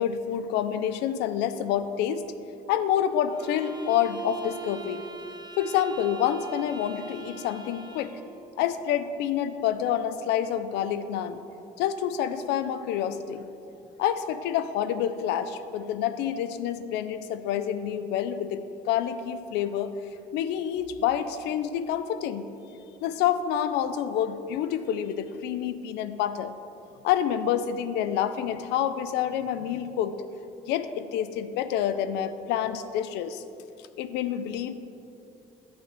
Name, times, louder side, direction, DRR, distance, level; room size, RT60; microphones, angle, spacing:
voice 1, 0.0-2.3 2.7-5.0 5.6-8.2 8.6-11.4 11.8-13.5 14.0-19.9 20.3-22.5 23.0-26.5 27.0-30.1 30.7-33.4 34.0-34.7, left 9 dB, 85° left, 12 dB, 0.4 m, -28 dB
sound 1, 3.3-8.3, right 5 dB, 25° right, 0.7 m, -42 dB
8.9 x 3.2 x 6.6 m, 2.7 s
cardioid pair, 110°, 17 cm